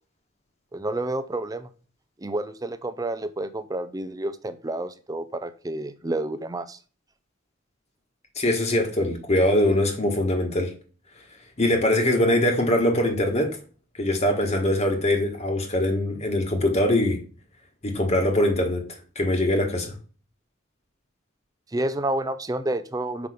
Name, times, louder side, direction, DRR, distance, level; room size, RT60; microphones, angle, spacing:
voice 1, 0.7-1.7 2.2-6.8 21.7-23.3, right 1 dB, 20° right, 0.5 m, -29 dB
voice 2, 8.4-10.7 11.6-13.6 14.0-17.2 17.8-18.9 19.1-19.9, left 1 dB, 35° left, 1.3 m, -22 dB
6.1 x 5.3 x 5.0 m
head